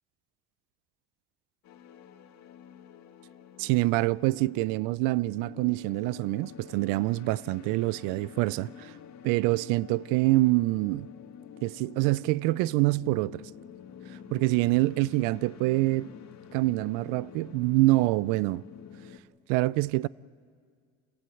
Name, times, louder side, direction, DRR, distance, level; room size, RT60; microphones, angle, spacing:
sound 1, 1.6-19.2, left 8 dB, 60° left, 1.9 m, -48 dB
voice 1, 3.6-8.9 9.2-11.1 11.6-13.4 14.3-16.1 16.5-18.6 19.5-20.1, right 20 dB, 80° right, 0.5 m, -26 dB
27.5 x 16.5 x 7.7 m
supercardioid pair, 80°, 32 cm